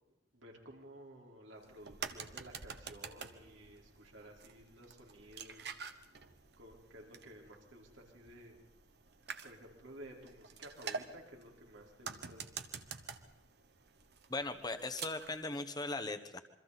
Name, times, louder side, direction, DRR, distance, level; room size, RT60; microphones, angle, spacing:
voice 1, 0.3-5.7 6.6-8.5 9.4-12.4, equal, 80° right, 0 dB, 4.4 m, -54 dB
sound 1, 1.6-15.4, right 6 dB, 55° right, 1.2 m, -48 dB
voice 2, 14.3-16.4, left 2 dB, 20° left, 8 dB, 1.2 m, -39 dB
27.5 x 24.0 x 4.2 m, 0.91 s
head